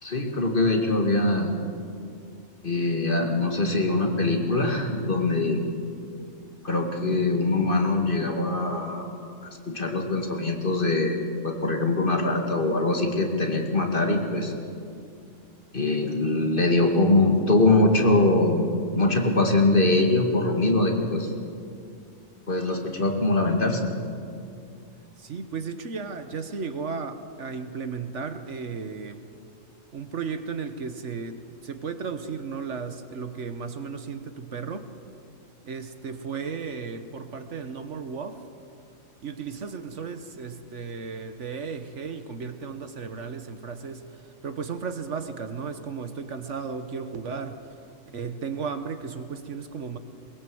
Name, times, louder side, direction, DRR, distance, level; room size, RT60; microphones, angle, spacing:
voice 1, 0.0-1.5 2.6-5.6 6.6-14.5 15.7-18.7 18.9-21.3 22.5-23.9, left 2 dB, 40° left, 3 dB, 2.2 m, -23 dB
voice 2, 25.2-29.2 29.9-34.9 35.6-38.4 39.2-47.7 48.1-50.0, right 5 dB, 65° right, 9 dB, 1.4 m, -35 dB
22.0 x 20.5 x 7.9 m, 2.5 s
omnidirectional pair, 1.4 m